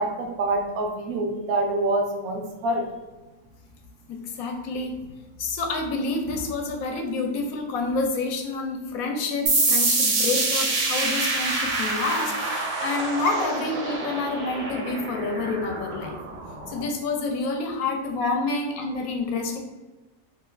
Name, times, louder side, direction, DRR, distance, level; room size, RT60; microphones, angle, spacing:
voice 1, 0.0-2.9 18.2-18.3, right 2 dB, 85° right, 2 dB, 1.1 m, -26 dB
voice 2, 4.1-5.1 5.4-16.2 16.7-19.6, left 3 dB, 80° left, 4 dB, 1.0 m, -28 dB
sound 1, 9.5-16.8, right 3 dB, 50° right, 0.6 m, -26 dB
3.0 x 2.3 x 3.2 m, 1.2 s
omnidirectional pair, 1.5 m